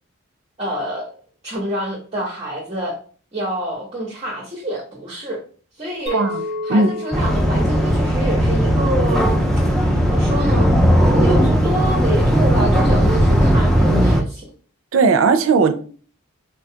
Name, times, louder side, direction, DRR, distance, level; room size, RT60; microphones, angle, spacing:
voice 1, 0.6-1.1 1.4-3.0 3.3-5.4 5.8-6.2 6.6-9.4 10.0-10.7 11.1-14.4, right 1 dB, 30° right, 0.7 m, -26 dB
Chink clink, 6.1-10.5, left 2 dB, 50° left, 1.4 m, -33 dB
sound 1, 7.1-14.2, equal, ahead, 0.3 m, -16 dB
voice 2, 14.9-15.7, right 4 dB, 70° right, 0.4 m, -16 dB
3.9 x 2.3 x 2.7 m
head